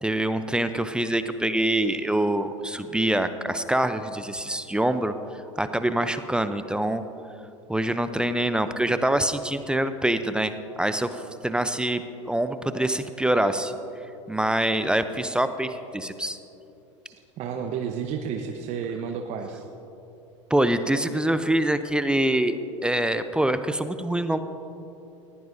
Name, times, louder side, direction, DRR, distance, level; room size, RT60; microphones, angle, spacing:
voice 1, 0.0-7.0 7.7-13.7 14.3-16.4 20.5-22.6 22.8-24.4, right 1 dB, 5° right, 10 dB, 0.6 m, -25 dB
voice 2, 17.4-19.6, right 7 dB, 45° right, 4 dB, 1.0 m, -31 dB
19.5 x 15.5 x 2.7 m, 2.8 s
hypercardioid pair, 85°, 16 cm